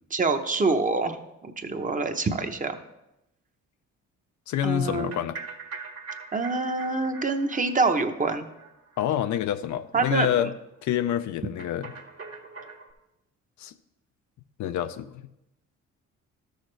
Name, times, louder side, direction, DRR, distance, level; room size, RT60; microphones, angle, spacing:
voice 1, 0.1-2.7 4.6-5.3 6.3-8.5 9.9-10.3, right 3 dB, 25° right, 6 dB, 0.8 m, -26 dB
voice 2, 4.5-5.4 9.0-10.5 10.8-11.9 13.6-13.7 14.6-15.2, left 10 dB, 70° left, 11 dB, 0.5 m, -27 dB
sound 1, 4.9-9.4 9.7-9.8 10.1-10.2 10.4-10.5 11.6-12.9, right 4 dB, 55° right, 1.6 m, -42 dB
13.0 x 6.4 x 3.3 m, 0.89 s
cardioid pair, 90°, 30 cm